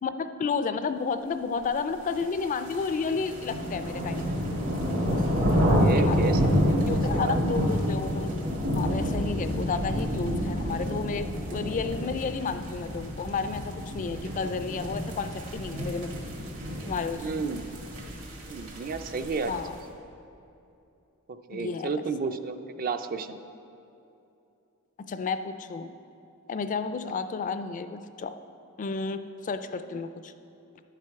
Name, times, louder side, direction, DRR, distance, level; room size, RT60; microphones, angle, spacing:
voice 1, 0.0-4.3 5.9-6.3 6.9-8.5 8.7-16.1 16.9-17.5 19.5-19.8 21.5-21.9 25.0-25.9 26.5-28.3 28.8-30.3, left 5 dB, 35° left, 10 dB, 0.3 m, -32 dB
sound 1, 2.2-19.7, equal, 70° right, 2.1 m, -28 dB
voice 2, 5.8-7.4 17.2-17.7 18.4-19.5 21.3-23.4, right 4 dB, 40° right, 9 dB, 0.4 m, -32 dB
11.0 x 7.5 x 4.6 m, 2.7 s
head